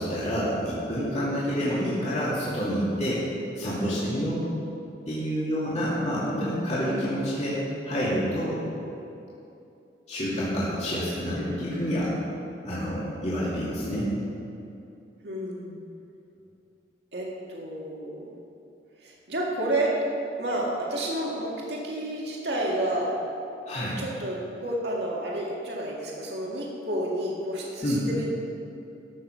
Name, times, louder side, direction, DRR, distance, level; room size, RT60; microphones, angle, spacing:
voice 1, 0.0-3.2 3.6-4.5 5.1-7.6 7.9-8.6 10.1-12.1 12.6-14.1 23.7-24.0 27.8-28.1, equal, 40° left, -9 dB, 2.5 m, -28 dB
voice 2, 15.2-15.8 17.1-18.3 19.0-20.0 20.4-23.2 24.0-28.2, right 1 dB, 65° right, -3 dB, 2.1 m, -30 dB
14.0 x 6.4 x 6.4 m, 2.7 s
head